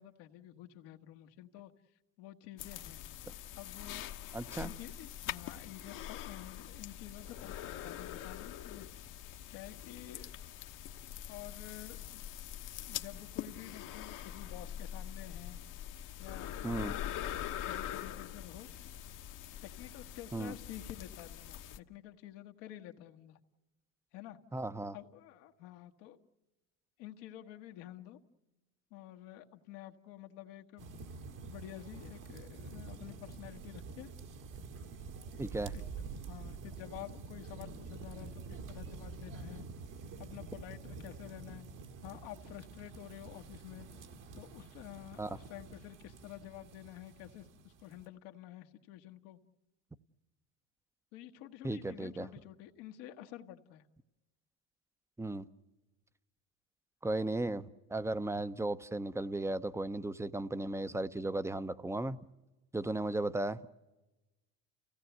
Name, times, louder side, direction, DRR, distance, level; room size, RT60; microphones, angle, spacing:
voice 1, 0.0-1.7 2.2-3.0 3.5-4.1 4.6-9.0 9.5-10.5 11.3-15.6 16.2-17.1 17.6-18.7 19.6-23.4 24.1-24.4 24.9-26.2 27.0-28.2 28.9-30.9 31.4-34.1 35.7-35.8 36.3-39.6 40.2-41.6 42.0-43.9 44.3-49.4 51.1-53.8, left 13 dB, 80° left, 1.4 m, -50 dB
sound 1, 2.6-21.8, left 11 dB, 60° left, 1.1 m, -43 dB
voice 2, 4.3-4.7 16.6-16.9 20.3-20.5 24.5-25.0 35.4-35.7 45.2-45.3 51.6-52.3 55.2-55.5 57.0-62.2 62.7-63.6, right 2 dB, 5° right, 0.7 m, -35 dB
sound 2, 30.8-48.1, right 4 dB, 60° right, 2.0 m, -47 dB
29.5 x 17.0 x 7.9 m
supercardioid pair, 90°, 36 cm